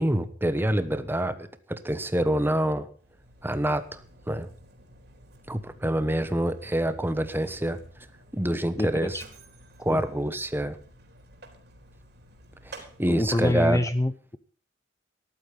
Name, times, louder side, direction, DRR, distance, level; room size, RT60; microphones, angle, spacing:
voice 1, 0.0-2.9 3.4-4.0 4.3-4.5 5.5-7.8 8.3-9.2 9.8-10.8 12.6-13.8, right 1 dB, 10° right, 11 dB, 1.1 m, -26 dB
Mechanisms, 2.9-13.7, right 1 dB, 60° right, 3.7 m, -52 dB
voice 2, 8.8-9.2 9.9-10.0 12.8-14.4, left 1 dB, 15° left, 12 dB, 0.6 m, -27 dB
14.0 x 12.0 x 5.7 m, 0.43 s
head